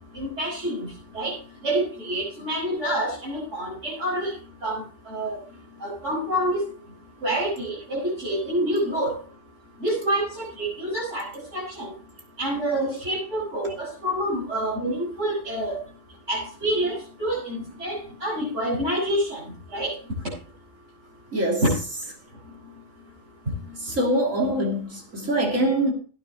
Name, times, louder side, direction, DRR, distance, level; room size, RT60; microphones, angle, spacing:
voice 1, 0.1-0.9 1.1-1.3 1.6-4.3 4.6-5.4 5.8-6.6 7.2-9.1 9.8-11.9 12.4-15.8 16.3-19.4 19.7-19.9 21.6-21.7, right 1 dB, 65° right, -7 dB, 6.6 m, -27 dB
voice 2, 21.3-21.6 23.8-25.9, right 1 dB, 85° right, 0 dB, 3.4 m, -24 dB
18.0 x 9.3 x 3.0 m, 0.38 s
omnidirectional pair, 1.3 m